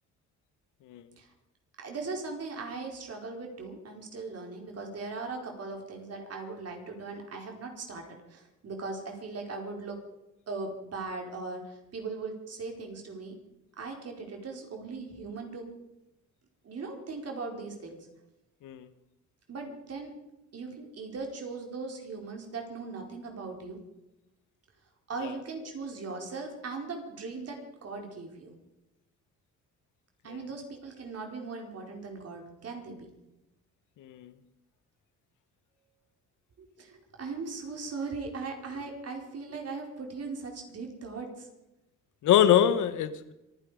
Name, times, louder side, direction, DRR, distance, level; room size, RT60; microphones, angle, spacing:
voice 1, 1.8-10.0 10.5-13.4 13.8-15.7 16.6-18.0 19.5-20.1 20.5-23.8 25.1-28.5 30.2-33.1 36.6-41.5, right 4 dB, 55° right, 2 dB, 4.8 m, -39 dB
voice 2, 34.0-34.3 42.2-43.3, left 10 dB, 80° left, 13 dB, 1.3 m, -24 dB
26.0 x 10.5 x 5.2 m, 0.93 s
cardioid pair, 90°, 30 cm